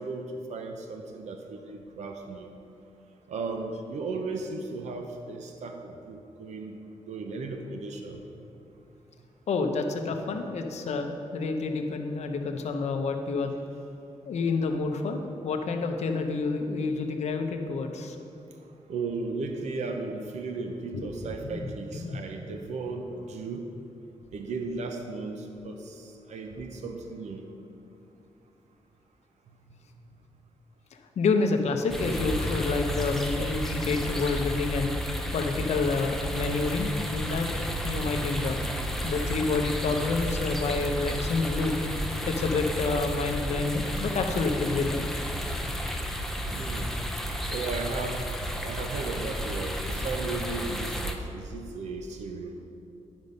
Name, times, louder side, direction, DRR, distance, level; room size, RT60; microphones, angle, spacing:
voice 1, 0.0-2.5 3.3-6.8 7.1-8.2 18.9-23.7 24.3-27.5 46.5-46.9 47.5-48.3 48.6-52.5, right 3 dB, 80° right, 4 dB, 0.7 m, -35 dB
voice 2, 9.5-13.5 14.3-15.2 15.4-18.2 20.9-21.0 21.5-21.7 22.0-22.2 31.2-34.9 35.3-37.5 37.8-38.6 39.0-41.8 42.3-45.1, left 4 dB, 70° left, 5 dB, 0.8 m, -28 dB
sound 1, 31.9-51.2, equal, 5° left, 0.6 m, -32 dB
10.5 x 5.3 x 5.3 m, 2.8 s
wide cardioid pair, 125°, 12 cm